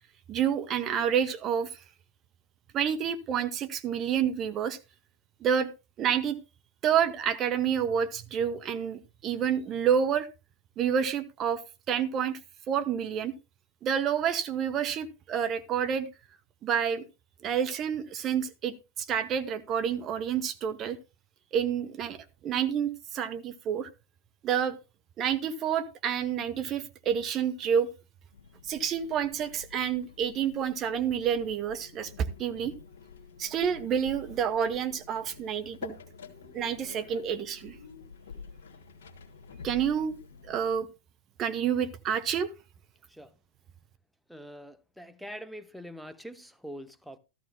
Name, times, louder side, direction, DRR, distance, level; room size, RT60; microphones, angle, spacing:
voice 1, 0.3-1.7 2.7-4.8 5.4-5.7 6.0-6.4 6.8-10.3 10.8-11.6 11.9-12.4 12.7-13.3 13.8-16.1 16.6-17.1 17.4-18.7 19.1-21.0 21.5-22.2 22.4-23.9 24.4-24.8 25.2-27.9 28.6-32.7 33.4-35.9 36.5-37.7 39.6-40.2 40.5-40.9 41.4-42.5, right 8 dB, 30° right, 0.8 m, -28 dB
sound 1, 28.3-40.8, left 5 dB, 60° left, 1.5 m, -48 dB
voice 2, 44.3-47.2, equal, ahead, 0.8 m, -44 dB
13.5 x 13.5 x 2.2 m
figure-of-eight pair, 90°, 0 cm